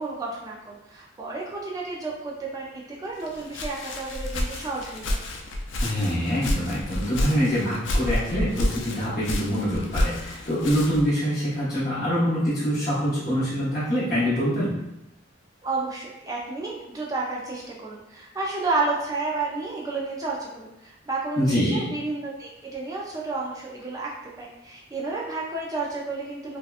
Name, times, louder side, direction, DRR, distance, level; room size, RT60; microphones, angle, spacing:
voice 1, 0.0-5.2 15.6-24.1 24.4-26.6, right 3 dB, 20° right, -3 dB, 0.3 m, -31 dB
Walk footsteps, 3.2-11.1, left 1 dB, 65° left, 0.4 m, -29 dB
voice 2, 5.8-14.7 21.4-21.9, equal, 45° left, -13 dB, 0.8 m, -25 dB
2.7 x 2.1 x 2.3 m, 0.88 s
head